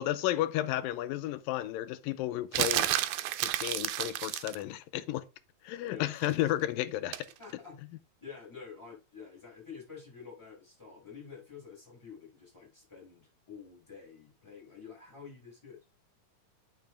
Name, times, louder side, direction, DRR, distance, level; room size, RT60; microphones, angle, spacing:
voice 1, 0.0-2.9 3.4-5.2 5.6-7.2, left 14 dB, 85° left, 2.4 m, -32 dB
sound 1, 2.5-4.6 7.1-7.3, right 14 dB, 90° right, 2.5 m, -30 dB
voice 2, 5.8-6.1 7.4-7.8 8.2-15.9, left 6 dB, 5° left, 5.7 m, -49 dB
9.2 x 5.8 x 3.8 m
omnidirectional pair, 4.1 m